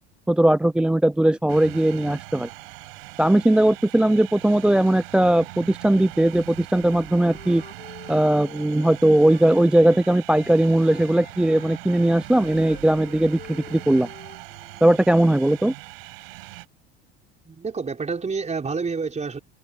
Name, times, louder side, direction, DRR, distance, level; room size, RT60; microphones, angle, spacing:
voice 1, 0.3-2.5 3.2-7.6 8.1-14.1 14.8-15.7, right 1 dB, 5° right, 0.3 m, -19 dB
sound 1, 1.5-16.7, right 28 dB, 75° right, 7.6 m, -41 dB
Wind instrument woodwind instrument, 6.8-10.6 10.8-14.9, left 6 dB, 30° left, 3.1 m, -47 dB
voice 2, 17.4-19.4, right 4 dB, 25° right, 5.0 m, -28 dB
hypercardioid pair, 80°, 30 cm